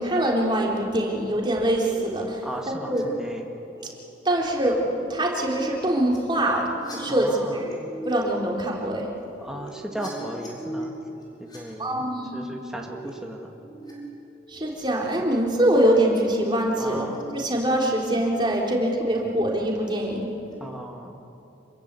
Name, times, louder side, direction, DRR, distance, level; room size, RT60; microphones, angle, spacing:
voice 1, 0.0-3.0 4.3-7.6 8.1-9.1 11.8-12.4 14.5-17.1 17.3-20.3, right 1 dB, 25° right, -2 dB, 3.6 m, -24 dB
sound 1, 1.5-3.0 3.3-3.8 4.8-11.6 12.4-13.9 14.3-14.7 15.8-16.3 16.6-17.2 17.8-18.0 19.4-19.7 20.1-20.5, right 1 dB, 25° left, 7.0 m, -41 dB
voice 2, 2.4-3.5 7.1-7.6 9.4-11.0 11.4-12.0 12.3-13.5 16.8-17.2 20.6-21.2, equal, 5° right, 0 dB, 1.7 m, -36 dB
27.5 x 22.5 x 8.3 m, 2.9 s
head